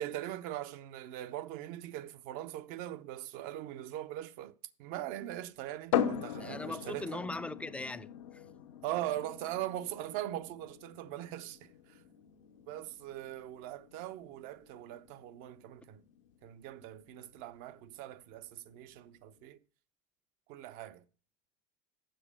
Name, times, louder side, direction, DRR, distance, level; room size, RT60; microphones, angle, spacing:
voice 1, 0.0-4.5 4.8-7.3 8.8-12.0 12.7-16.0 16.4-19.6 20.5-21.0, right 13 dB, 60° right, 0.7 m, -41 dB
sound 1, 5.9-19.4, left 9 dB, 80° left, 0.8 m, -41 dB
voice 2, 6.4-8.4, left 2 dB, 10° left, 0.4 m, -40 dB
7.8 x 6.5 x 4.9 m
supercardioid pair, 110°, 16 cm